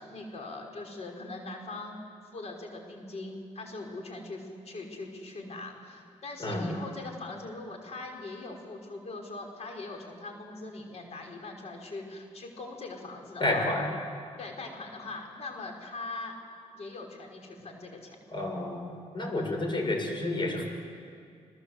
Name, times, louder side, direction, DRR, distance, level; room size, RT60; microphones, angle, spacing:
voice 1, 0.0-2.0 2.3-13.6 14.4-16.3 16.7-18.2, left 2 dB, 60° left, 2 dB, 5.3 m, -41 dB
voice 2, 6.4-6.7 13.4-13.9 18.3-20.6, left 2 dB, 40° left, 3 dB, 6.8 m, -30 dB
29.5 x 21.0 x 8.1 m, 2.3 s
cardioid pair, 85°, 12 cm